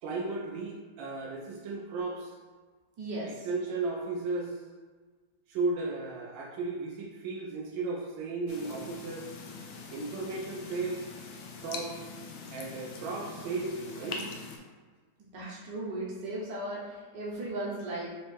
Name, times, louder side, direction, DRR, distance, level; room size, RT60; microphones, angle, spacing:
voice 1, 0.0-2.4 3.2-4.6 5.5-9.3 9.9-11.1 11.6-12.1 12.5-14.4, right 3 dB, 90° right, -2 dB, 1.4 m, -35 dB
voice 2, 3.0-3.3 15.2-18.1, right 1 dB, 65° right, -5 dB, 1.6 m, -36 dB
sound 1, 8.5-14.6, left 4 dB, 75° left, 1.1 m, -43 dB
4.3 x 3.0 x 3.3 m, 1.4 s
omnidirectional pair, 2.0 m